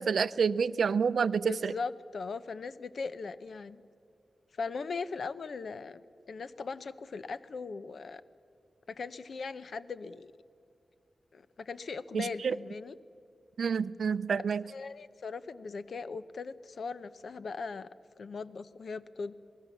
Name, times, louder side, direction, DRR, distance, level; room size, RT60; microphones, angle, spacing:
voice 1, 0.0-1.7 12.1-12.6 13.6-14.6, right 6 dB, 80° right, 0.5 m, -28 dB
voice 2, 1.4-3.8 4.6-6.0 6.3-8.2 8.9-10.3 11.3-13.0 14.3-14.4 14.7-17.9 18.2-19.3, left 4 dB, 65° left, 0.7 m, -39 dB
28.0 x 19.5 x 7.2 m
wide cardioid pair, 160°, 0 cm